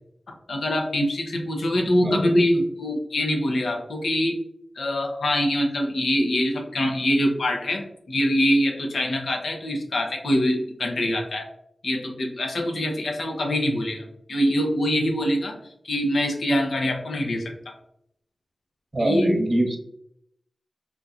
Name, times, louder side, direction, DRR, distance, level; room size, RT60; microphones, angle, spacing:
voice 1, 0.5-4.4 4.8-11.5 11.8-15.6 15.8-17.5 19.0-19.3, equal, 80° left, 3 dB, 0.7 m, -24 dB
voice 2, 18.9-19.8, right 1 dB, 45° right, 3 dB, 0.8 m, -24 dB
3.6 x 2.8 x 2.4 m, 0.73 s
cardioid pair, 45°, 0 cm